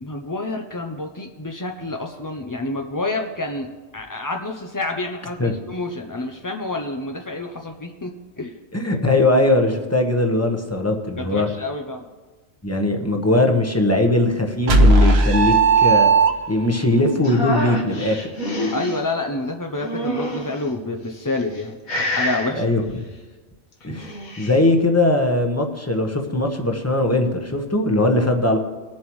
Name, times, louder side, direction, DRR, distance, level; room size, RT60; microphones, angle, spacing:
voice 1, 0.0-3.7 3.9-8.5 11.2-12.0 18.7-22.7, left 2 dB, 30° left, 2 dB, 0.3 m, -28 dB
voice 2, 8.7-11.5 12.6-16.1 16.5-18.2 22.6-22.8 23.8-28.6, left 2 dB, 10° left, 3 dB, 1.0 m, -20 dB
sound 1, 14.7-16.8, right 3 dB, 50° right, 1.2 m, -15 dB
sound 2, 17.2-19.0 19.8-20.6 21.3-21.6 21.9-22.5 23.8-24.6, equal, 80° left, 2.0 m, -27 dB
21.0 x 7.3 x 3.2 m, 1.3 s
omnidirectional pair, 1.4 m